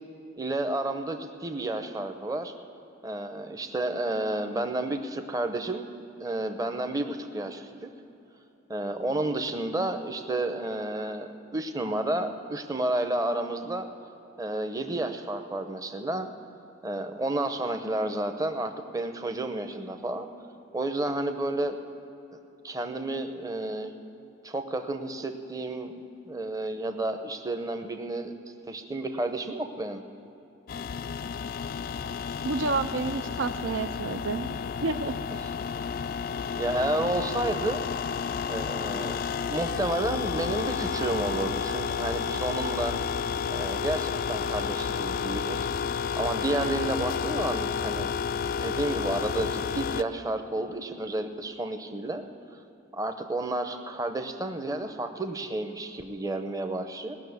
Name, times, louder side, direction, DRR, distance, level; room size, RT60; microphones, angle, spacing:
voice 1, 0.4-2.5 3.0-5.9 6.2-7.9 8.7-13.9 14.4-16.3 16.8-20.3 20.7-21.8 22.6-23.9 24.4-25.9 26.2-28.3 28.7-30.0 35.3-35.5 36.6-37.8 38.5-39.2 39.5-42.9 43.5-45.7 46.2-48.1 48.5-52.2 52.9-57.2, right 2 dB, 20° right, 6 dB, 0.7 m, -31 dB
sound 1, 30.7-50.0, left 6 dB, 45° left, 0.3 m, -31 dB
voice 2, 32.4-34.6 34.8-35.2, right 3 dB, 75° right, 10 dB, 0.5 m, -29 dB
18.5 x 6.5 x 9.5 m, 3.0 s
head